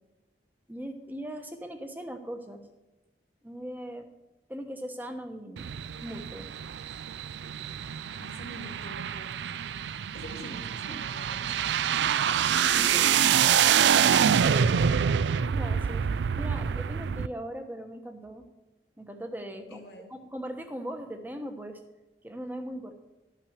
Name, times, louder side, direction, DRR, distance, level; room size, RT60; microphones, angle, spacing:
voice 1, 0.7-2.6 3.4-4.1 4.5-5.7 6.0-6.5 15.4-16.1 16.4-18.4 19.0-19.8 20.1-21.8 22.2-22.9, equal, 10° right, 5 dB, 1.0 m, -39 dB
sound 1, 5.6-17.3, right 8 dB, 90° right, 0.4 m, -26 dB
voice 2, 8.1-9.3 10.1-12.2 12.6-13.2 19.7-20.1, left 1 dB, 75° left, 2 dB, 2.3 m, -46 dB
12.5 x 5.9 x 6.5 m, 1.1 s
head